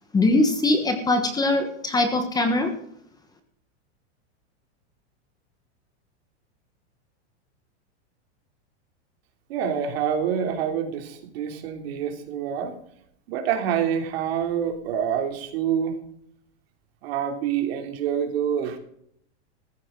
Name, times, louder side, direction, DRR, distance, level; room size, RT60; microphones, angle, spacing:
voice 1, 0.1-2.7, left 2 dB, 10° left, 6 dB, 1.3 m, -21 dB
voice 2, 9.5-12.7 13.3-16.0 17.0-18.8, right 8 dB, 60° right, 4 dB, 3.1 m, -26 dB
15.0 x 14.5 x 3.9 m, 0.69 s
supercardioid pair, 160°, 34 cm